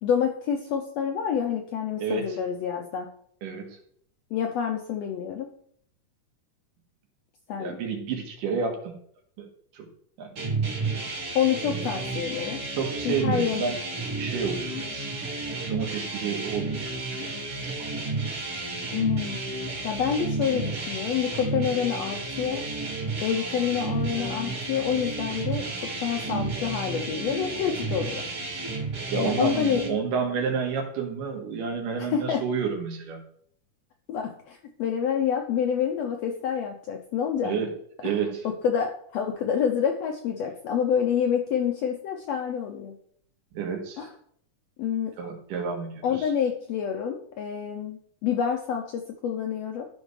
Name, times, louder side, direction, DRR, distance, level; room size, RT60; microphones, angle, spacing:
voice 1, 0.0-3.1 4.3-5.5 7.5-7.8 11.3-12.6 13.0-13.7 18.9-19.4 19.8-22.6 23.2-28.3 29.1-29.8 32.0-32.4 34.1-37.6 38.0-38.2 38.4-43.0 44.0-44.1 44.8-45.1 46.0-49.9, left 8 dB, 80° left, 4 dB, 1.5 m, -27 dB
voice 2, 2.0-2.4 3.4-3.8 7.6-8.9 9.4-9.5 9.7-9.9 10.2-10.4 12.8-13.8 14.2-15.1 15.7-17.2 29.1-33.2 37.4-37.7 38.0-38.4 43.5-44.1 45.2-46.0, right 6 dB, 85° right, 2 dB, 3.0 m, -30 dB
sound 1, 10.4-29.9, right 3 dB, 45° right, 2.5 m, -32 dB
12.5 x 5.3 x 3.2 m, 0.64 s
omnidirectional pair, 3.7 m